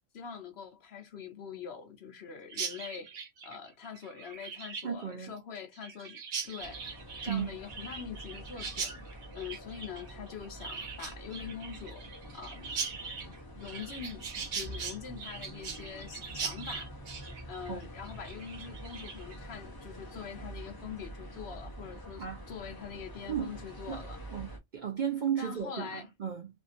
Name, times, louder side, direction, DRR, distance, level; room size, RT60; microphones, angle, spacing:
voice 1, 0.1-3.2 3.4-9.0 9.3-12.0 12.3-12.9 13.6-16.9 17.5-24.2 25.4-26.1, left 7 dB, 60° left, 1.0 m, -44 dB
Chirp tweet, 2.5-19.4, right 5 dB, 80° right, 1.2 m, -41 dB
voice 2, 4.8-5.3 7.3-7.5 17.7-17.9 22.2-22.4 23.3-23.6 23.9-24.0 24.3-26.5, right 8 dB, 55° right, 0.5 m, -34 dB
sound 1, 6.6-24.6, right 1 dB, 20° left, 0.7 m, -46 dB
2.8 x 2.6 x 2.4 m
omnidirectional pair, 1.3 m